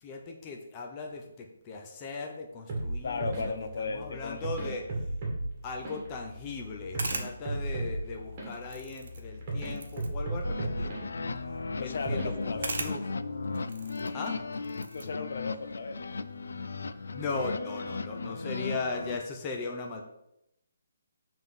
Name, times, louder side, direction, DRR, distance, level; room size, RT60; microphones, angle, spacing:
voice 1, 0.0-4.9 5.6-11.1 11.8-13.1 14.1-14.4 17.1-20.0, left 3 dB, 15° left, 1 dB, 0.5 m, -38 dB
sound 1, 2.7-12.8, right 1 dB, 20° right, 1.9 m, -36 dB
voice 2, 3.0-4.4 11.7-12.7 14.9-16.0, left 4 dB, 55° left, 9 dB, 0.7 m, -35 dB
sound 2, 6.5-17.4, right 3 dB, 60° right, 1.1 m, -44 dB
sound 3, 10.4-19.2, left 4 dB, 90° left, 0.4 m, -36 dB
7.9 x 3.6 x 5.4 m, 0.83 s
hypercardioid pair, 175°, 0 cm